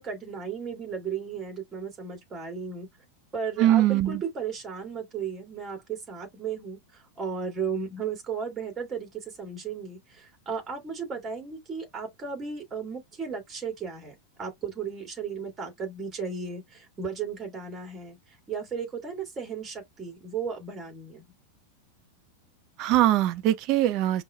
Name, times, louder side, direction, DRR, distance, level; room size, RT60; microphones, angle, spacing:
voice 1, 0.0-2.9 3.3-18.2 18.5-21.3, right 6 dB, 25° right, 2.6 m, -35 dB
voice 2, 3.6-4.2 22.8-24.2, right 14 dB, 40° right, 0.6 m, -22 dB
5.4 x 2.9 x 2.3 m
figure-of-eight pair, 90°, 0 cm